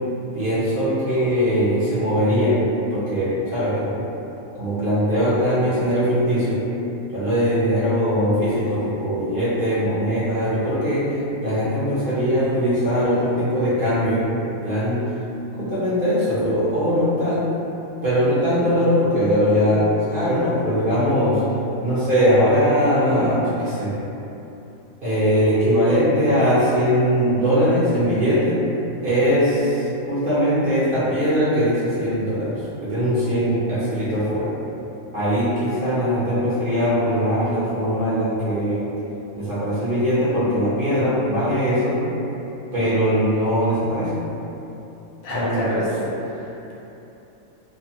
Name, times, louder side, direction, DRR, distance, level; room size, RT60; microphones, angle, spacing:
voice 1, 0.3-4.0 4.6-6.6 7.1-14.3 14.6-15.1 15.6-17.5 18.0-21.4 21.8-24.0 25.0-28.6 29.0-34.5 35.1-38.9 39.3-42.0 42.7-44.2 45.3-46.1, equal, 55° right, -11 dB, 0.6 m, -21 dB
voice 2, 45.2-45.9 46.2-46.7, left 2 dB, 85° left, -5 dB, 1.1 m, -28 dB
2.6 x 2.2 x 2.7 m, 2.9 s
omnidirectional pair, 1.4 m